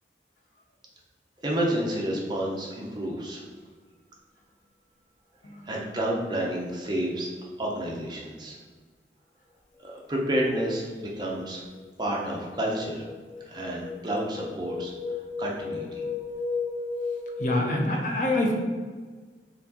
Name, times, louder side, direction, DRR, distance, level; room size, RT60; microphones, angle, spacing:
voice 1, 1.4-3.4 5.7-7.3 7.6-8.6 9.8-11.6 12.0-13.1 13.5-14.9 15.4-16.0, right 1 dB, 25° right, -3 dB, 0.6 m, -30 dB
sound 1, 10.7-11.1 11.5-17.8, left 4 dB, 90° left, 0.6 m, -35 dB
voice 2, 17.4-18.5, left 1 dB, 45° left, 1 dB, 0.5 m, -26 dB
4.2 x 3.8 x 2.8 m, 1.5 s
head